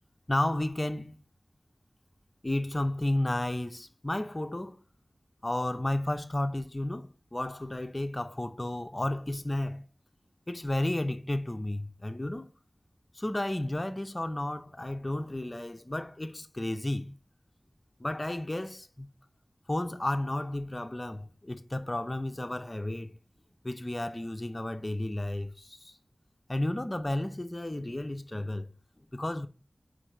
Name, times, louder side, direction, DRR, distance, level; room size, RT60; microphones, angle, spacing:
voice 1, 0.3-1.2 2.4-4.8 5.4-9.8 10.5-12.5 13.1-17.2 18.0-19.1 19.7-23.1 23.6-25.9 26.5-28.7 29.1-29.5, left 1 dB, 30° left, 0.8 m, -32 dB
4.9 x 4.6 x 6.0 m
wide cardioid pair, 60°, 0 cm